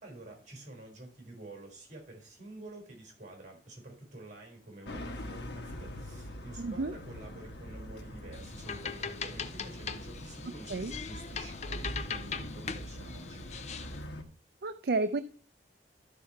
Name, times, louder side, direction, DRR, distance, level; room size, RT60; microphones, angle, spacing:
voice 1, 0.0-13.5, right 2 dB, 45° right, 2 dB, 4.5 m, -49 dB
sound 1, 4.9-14.2, equal, 70° left, 1.3 m, -43 dB
voice 2, 6.6-6.9 10.7-10.9 14.6-15.2, right 3 dB, 60° right, 11 dB, 0.5 m, -31 dB
sound 2, 8.3-14.0, left 6 dB, 40° left, 0.6 m, -41 dB
12.5 x 5.6 x 4.5 m, 0.43 s
head